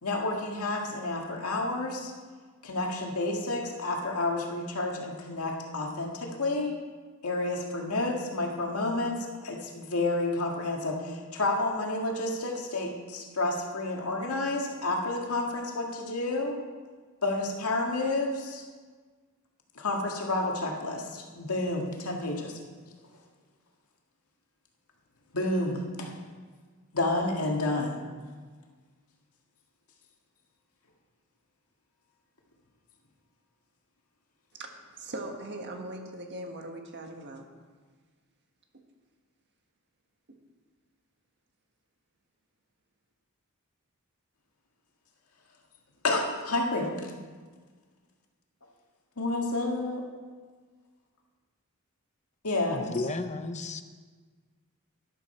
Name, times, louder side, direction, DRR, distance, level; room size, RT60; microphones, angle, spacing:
voice 1, 0.0-2.1 2.6-6.8 7.2-16.6 17.2-18.6 19.8-22.6 25.3-26.2 26.9-28.0 46.0-47.1 49.2-50.1 52.4-52.9, left 2 dB, 90° left, 1 dB, 1.9 m, -30 dB
voice 2, 34.5-37.4, right 1 dB, 55° right, 3 dB, 1.5 m, -40 dB
voice 3, 52.7-53.8, left 3 dB, 30° left, 9 dB, 0.7 m, -33 dB
12.5 x 11.0 x 4.4 m, 1.5 s
head